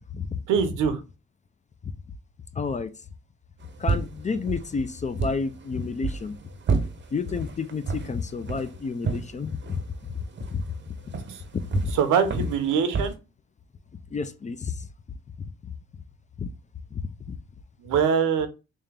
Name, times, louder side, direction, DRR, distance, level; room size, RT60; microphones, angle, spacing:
voice 1, 0.5-1.0 11.3-11.4 11.9-13.1 17.8-18.5, right 7 dB, 85° right, 0.8 m, -23 dB
voice 2, 2.5-2.9 3.8-6.4 7.1-9.8 10.5-10.6 11.5-11.9 12.4-12.5 14.1-14.9 16.4-16.5 16.9-17.0 17.3-17.4, left 5 dB, 25° left, 0.4 m, -30 dB
sound 1, 3.6-13.1, right 4 dB, 35° right, 0.7 m, -32 dB
3.5 x 2.8 x 3.3 m
cardioid pair, 90°, 30 cm